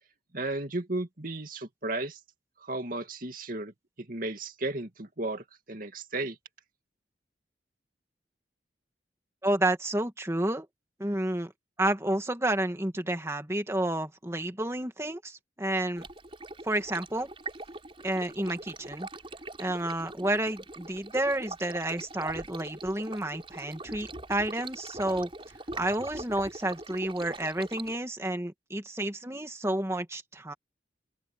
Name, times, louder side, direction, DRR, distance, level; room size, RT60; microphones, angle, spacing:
voice 1, 0.3-2.2 2.6-3.7 4.0-6.4, right 2 dB, 50° right, 2.4 m, -34 dB
voice 2, 9.4-10.7 11.0-11.5 11.8-16.1 16.6-17.3 18.0-19.1 19.6-25.3 25.8-30.5, right 1 dB, 15° right, 1.9 m, -30 dB
Stream, 16.0-28.0, right 2 dB, 30° right, 5.2 m, -42 dB
open air
head